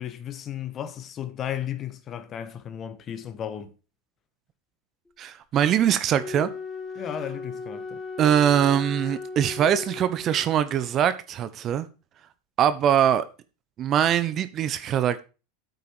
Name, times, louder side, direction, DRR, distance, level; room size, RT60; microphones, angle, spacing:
voice 1, 0.0-3.7 6.9-8.0, left 9 dB, 35° left, 1.6 m, -34 dB
voice 2, 5.2-6.5 8.2-11.9 12.6-13.2 13.8-15.2, right 9 dB, 40° right, 1.0 m, -22 dB
Wind instrument woodwind instrument, 6.1-10.6, left 4 dB, 10° left, 3.4 m, -37 dB
9.1 x 8.3 x 4.6 m
hypercardioid pair, 85°, 0 cm